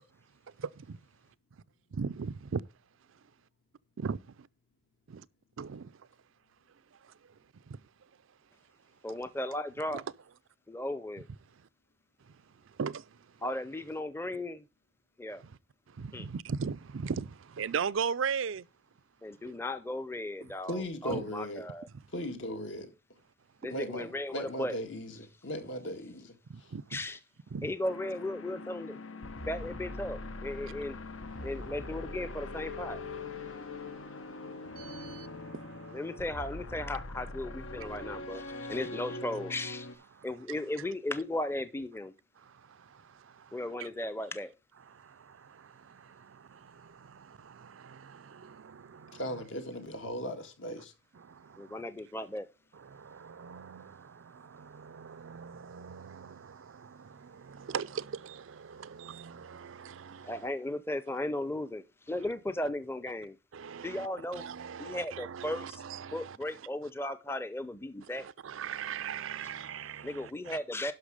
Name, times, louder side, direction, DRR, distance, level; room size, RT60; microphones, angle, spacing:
voice 1, 0.6-1.0 1.9-2.6 4.0-4.2 5.1-5.2 5.6-5.9 7.7-7.8 9.9-10.0 12.8-13.0 16.0-18.6 21.1-21.2 23.6-23.7 26.5-27.0 27.5-27.7 34.8-35.3 35.6-36.0 43.8-43.9 45.0-49.2 51.3-51.8 52.9-60.4 63.5-64.1 64.3-66.4 68.1-70.6, right 6 dB, 85° right, 0.5 m, -39 dB
voice 2, 9.0-10.0 10.7-11.2 13.4-14.6 15.2-15.4 16.1-16.3 19.2-21.9 23.6-24.7 26.9-27.2 27.6-29.0 29.5-31.0 31.4-33.0 35.9-39.9 40.2-42.1 43.5-44.5 51.6-52.5 60.3-63.4 63.8-64.5 64.8-65.8 66.1-68.3 70.0-70.9, left 1 dB, 10° left, 0.5 m, -36 dB
voice 3, 20.7-21.7 22.1-22.9 23.7-26.4 49.1-50.9, equal, 75° left, 1.8 m, -37 dB
sound 1, 27.8-39.9, left 2 dB, 90° left, 1.1 m, -42 dB
11.5 x 5.8 x 4.9 m
head